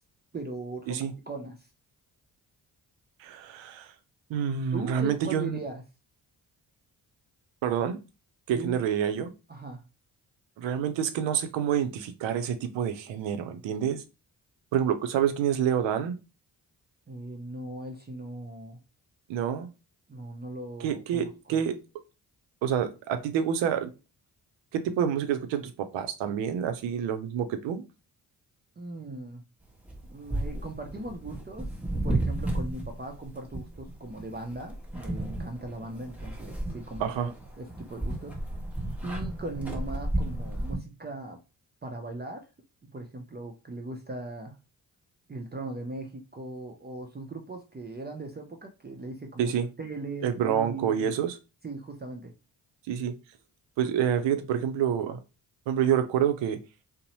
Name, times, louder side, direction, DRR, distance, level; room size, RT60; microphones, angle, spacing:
voice 1, 0.3-1.7 4.7-5.8 8.5-8.8 9.5-9.8 17.1-18.8 20.1-21.6 28.8-29.4 30.0-31.7 32.0-38.4 39.0-41.4 41.8-42.5 42.8-44.6 45.3-51.1 51.6-52.3, right 2 dB, 20° right, 0.5 m, -39 dB
voice 2, 3.2-3.9 4.3-5.6 7.6-8.0 8.5-9.3 10.6-14.0 14.7-16.2 19.3-19.7 20.8-21.8 22.6-23.9 24.7-27.8 37.0-37.3 49.4-49.7 50.2-51.4 52.9-53.2 53.8-55.2 55.7-56.6, right 8 dB, 75° right, 0.5 m, -28 dB
sound 1, 29.9-40.8, right 1 dB, 5° right, 0.9 m, -33 dB
2.6 x 2.1 x 2.9 m
supercardioid pair, 40°, 45 cm